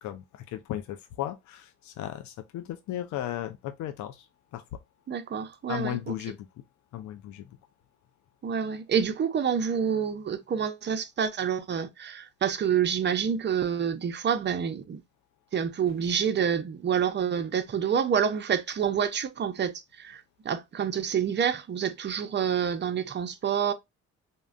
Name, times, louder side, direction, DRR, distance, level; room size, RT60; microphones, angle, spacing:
voice 1, 0.0-4.3 4.5-4.8 5.7-6.5 6.9-7.5, left 12 dB, 70° left, 0.5 m, -36 dB
voice 2, 5.1-6.1 8.4-15.0 15.5-23.7, right 7 dB, 35° right, 0.6 m, -28 dB
3.6 x 2.1 x 2.4 m
cardioid pair, 90°, 30 cm